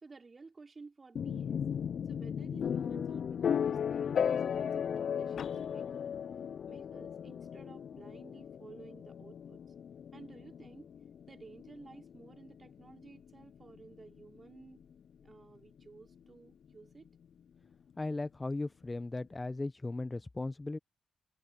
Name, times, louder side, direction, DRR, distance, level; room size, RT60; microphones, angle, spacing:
voice 1, 0.0-1.6 2.1-6.1 6.7-9.6 10.1-10.9 11.3-14.8 15.2-17.1, right 4 dB, 40° right, 3.3 m, -54 dB
sound 1, 1.2-14.9, left 8 dB, 70° left, 0.3 m, -36 dB
voice 2, 18.0-20.8, left 2 dB, 25° left, 0.9 m, -37 dB
supercardioid pair, 45°, 0 cm